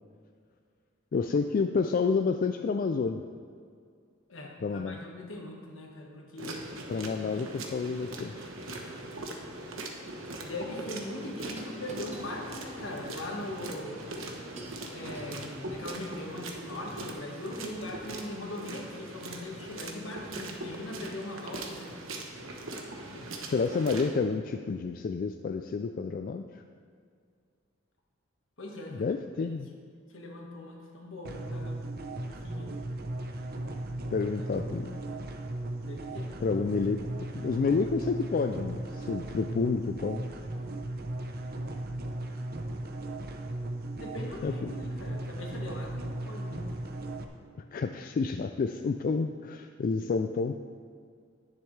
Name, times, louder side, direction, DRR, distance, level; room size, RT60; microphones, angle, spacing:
voice 1, 1.1-3.2 4.6-5.0 6.9-8.5 23.1-23.2 23.5-26.6 28.9-29.7 34.1-35.0 36.4-37.0 37.3-40.2 44.4-44.7 47.7-50.6, left 4 dB, 45° left, 7 dB, 0.3 m, -29 dB
voice 2, 4.3-6.6 6.9-7.6 10.4-14.0 14.9-21.9 28.6-29.0 29.4-29.5 30.1-31.8 32.3-32.7 35.8-36.3 44.0-46.7, left 1 dB, 70° left, -1 dB, 1.6 m, -40 dB
sound 1, 6.4-24.1, right 2 dB, 80° right, 1.1 m, -41 dB
sound 2, 10.2-17.2, right 1 dB, 35° right, 1.2 m, -48 dB
sound 3, 31.2-47.2, right 1 dB, 50° right, 0.8 m, -37 dB
10.5 x 10.0 x 3.3 m, 2.2 s
head